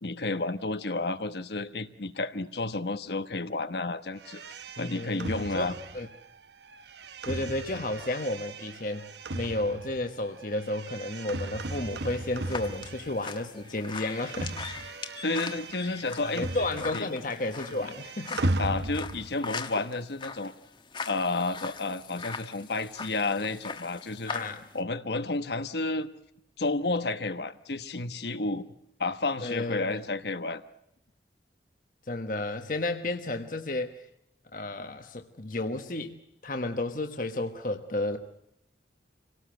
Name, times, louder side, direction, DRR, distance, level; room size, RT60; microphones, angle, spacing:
voice 1, 0.0-4.4 4.8-5.7 15.2-16.5 16.9-17.1 18.6-20.5 21.1-24.3 24.7-26.1 26.6-28.7 29.0-30.6, left 3 dB, 65° left, 10 dB, 1.1 m, -31 dB
sound 1, 4.2-13.5 13.7-17.2 17.4-19.4, right 2 dB, 70° right, 0.9 m, -37 dB
voice 2, 4.8-6.1 7.2-14.6 16.2-18.4 24.3-24.6 29.4-30.0 32.1-34.0 34.5-36.2 36.4-38.2, left 2 dB, 50° left, 6 dB, 1.3 m, -32 dB
sound 2, 11.6-24.8, left 5 dB, 25° left, 1.3 m, -41 dB
26.5 x 18.0 x 7.9 m, 0.78 s
head